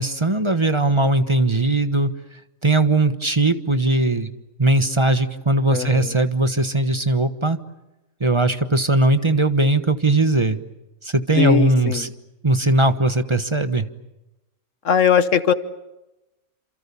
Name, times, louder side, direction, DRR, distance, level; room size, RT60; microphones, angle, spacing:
voice 1, 0.0-2.1 2.6-4.3 4.6-7.6 8.2-10.6 11.0-12.1 12.4-13.9, right 2 dB, 20° right, 9 dB, 1.2 m, -19 dB
voice 2, 5.7-6.1 11.3-12.1 14.8-15.5, left 7 dB, 65° left, 12 dB, 1.5 m, -19 dB
28.5 x 27.5 x 7.0 m, 0.97 s
omnidirectional pair, 1.4 m